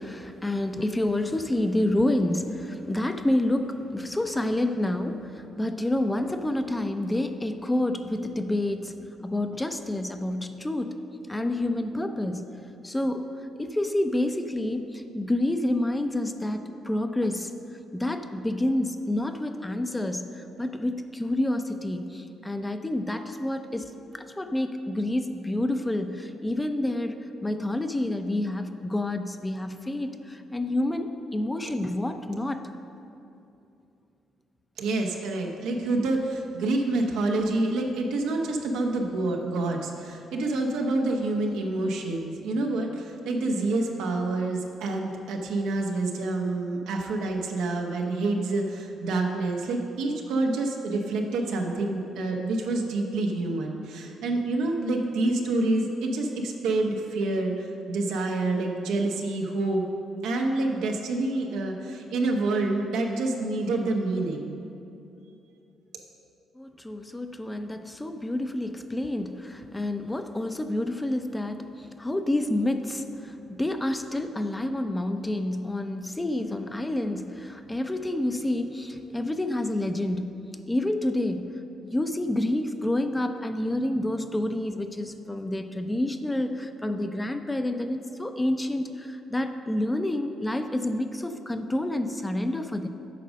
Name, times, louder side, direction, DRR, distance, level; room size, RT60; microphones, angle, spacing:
voice 1, 0.0-11.0 11.2-12.5 12.8-13.3 13.6-17.5 17.9-32.6 66.5-80.4 80.7-81.5 81.8-92.9, left 1 dB, 10° left, 7 dB, 0.5 m, -28 dB
voice 2, 34.8-59.9 60.2-64.5, right 2 dB, 90° right, 1 dB, 1.0 m, -27 dB
8.4 x 5.2 x 6.3 m, 2.7 s
cardioid pair, 90°, 0 cm